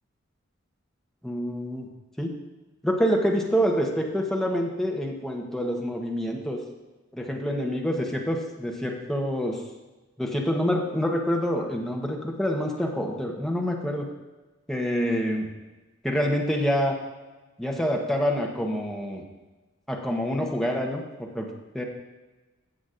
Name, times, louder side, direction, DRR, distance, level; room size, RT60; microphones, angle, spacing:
voice 1, 1.2-1.9 2.2-2.3 2.8-6.6 7.1-9.6 10.2-14.1 14.7-15.5 16.0-16.9 17.6-19.2 19.9-21.8, equal, ahead, -1 dB, 1.0 m, -27 dB
16.5 x 6.1 x 2.6 m, 1.2 s
head